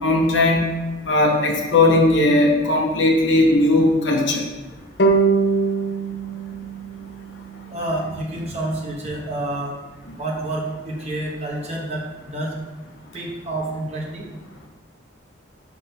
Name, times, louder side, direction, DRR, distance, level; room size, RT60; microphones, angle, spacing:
voice 1, 0.0-0.6 1.1-4.5, left 2 dB, 75° left, 0 dB, 1.0 m, -17 dB
sound 1, 5.0-8.3, right 4 dB, 60° left, 0.7 m, -23 dB
voice 2, 7.7-9.8 10.2-12.6 13.1-14.3, right 1 dB, 35° right, -1 dB, 0.9 m, -28 dB
5.5 x 3.7 x 5.6 m, 1.1 s
head